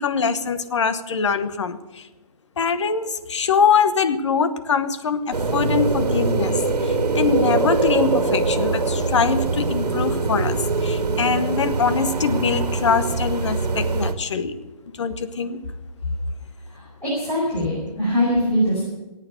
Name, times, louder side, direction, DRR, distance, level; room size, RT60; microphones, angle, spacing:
voice 1, 0.0-2.0 2.6-10.6 10.8-14.5 15.0-15.6, left 6 dB, 45° left, 11 dB, 1.1 m, -23 dB
sound 1, 5.3-14.1, right 3 dB, 75° right, 1.9 m, -23 dB
voice 2, 17.0-18.8, equal, 10° left, -9 dB, 5.1 m, -22 dB
18.0 x 8.9 x 8.1 m, 1.1 s
hypercardioid pair, 160°, 20 cm